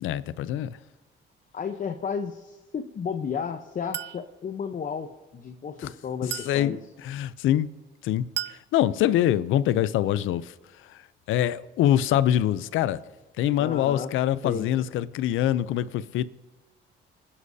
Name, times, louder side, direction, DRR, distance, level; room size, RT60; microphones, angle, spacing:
voice 1, 0.0-0.8 5.8-5.9 6.2-6.7 7.0-7.7 8.0-10.5 10.9-11.0 11.3-13.0 13.4-16.2, left 12 dB, 85° left, 0.6 m, -24 dB
voice 2, 1.5-6.8 13.6-14.1 14.4-14.7, left 6 dB, 45° left, 0.9 m, -33 dB
Chink clink, 3.9-4.3 6.3-6.6 8.4-8.7, right 12 dB, 60° right, 0.4 m, -33 dB
29.0 x 9.8 x 2.8 m
cardioid pair, 90°, 20 cm